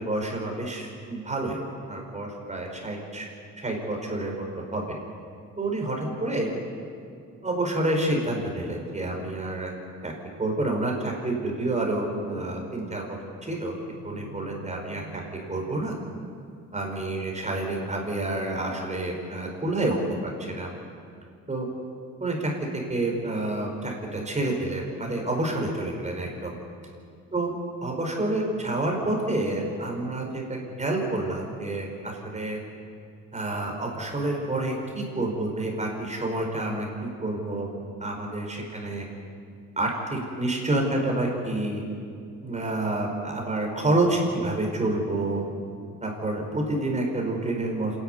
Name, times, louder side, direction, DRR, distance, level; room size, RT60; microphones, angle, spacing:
voice 1, 0.0-1.6 1.9-3.3 3.6-5.0 5.6-6.5 7.4-9.7 10.0-10.1 10.4-13.7 14.0-15.2 15.5-16.0 16.7-20.7 21.5-21.7 22.2-26.5 27.3-27.5 27.8-32.6 33.3-36.9 37.2-37.7 38.0-39.1 39.8-41.8 42.4-45.4 46.0-47.9, right 2 dB, 25° right, 0 dB, 5.6 m, -28 dB
sound 1, 13.6-17.1, right 3 dB, 60° right, 2.9 m, -48 dB
27.0 x 11.5 x 9.7 m, 2.4 s
cardioid pair, 90°, 30 cm